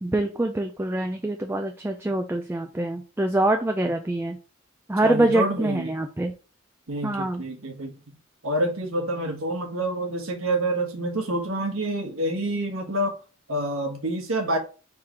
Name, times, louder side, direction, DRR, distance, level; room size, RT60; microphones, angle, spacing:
voice 1, 0.0-4.4 4.9-6.3 7.0-7.4, right 1 dB, 10° right, 0.4 m, -25 dB
voice 2, 5.0-5.9 6.9-7.9 8.4-13.1 13.5-14.6, right 1 dB, 90° right, 1.3 m, -27 dB
4.8 x 3.7 x 2.9 m
head